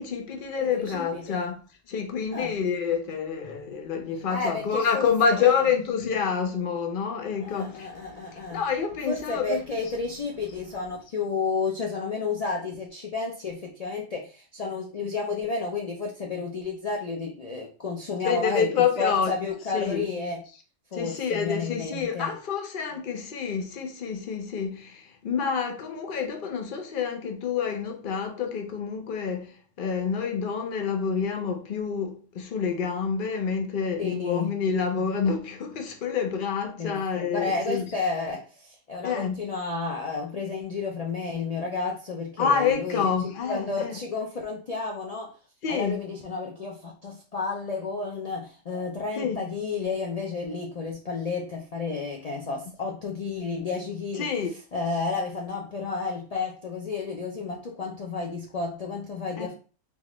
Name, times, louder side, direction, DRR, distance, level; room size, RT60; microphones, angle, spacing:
voice 1, 0.0-1.6 1.9-7.9 8.5-9.6 18.2-19.3 19.7-20.1 20.9-37.9 39.0-39.4 42.4-44.0 45.6-46.0 49.1-49.4 54.2-54.5 59.4-59.5, left 6 dB, 50° left, 0.7 m, -27 dB
voice 2, 0.8-1.5 2.3-2.6 4.3-5.4 7.4-8.6 9.1-18.7 19.0-20.4 20.9-22.3 34.0-34.6 36.8-43.1 43.4-45.4 45.7-54.3 54.7-59.5, left 4 dB, 75° left, 0.3 m, -31 dB
3.8 x 2.4 x 3.0 m
omnidirectional pair, 1.4 m